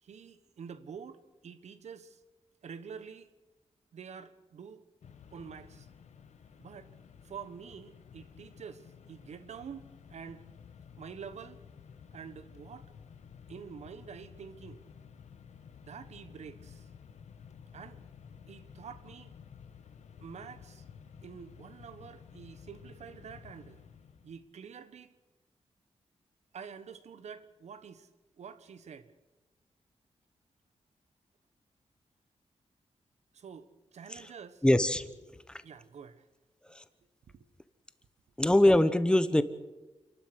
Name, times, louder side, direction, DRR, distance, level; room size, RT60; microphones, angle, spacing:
voice 1, 0.0-2.2 2.6-3.3 3.9-4.8 5.3-5.9 6.6-6.9 7.2-10.5 11.0-11.6 12.1-13.0 13.5-14.8 15.8-16.9 17.7-18.0 18.5-19.3 20.2-20.8 21.2-23.8 24.2-25.1 26.5-28.1 28.4-29.1 33.3-34.6 35.6-36.3 37.3-37.5, right 6 dB, 80° right, 12 dB, 1.3 m, -47 dB
Mechanisms, 5.0-24.5, left 7 dB, 80° left, 1.3 m, -53 dB
voice 2, 34.6-35.0 35.5-35.6 36.7-36.8 38.4-39.4, left 1 dB, 10° left, 12 dB, 1.0 m, -23 dB
29.0 x 12.0 x 8.1 m, 1.1 s
wide cardioid pair, 165°, 12 cm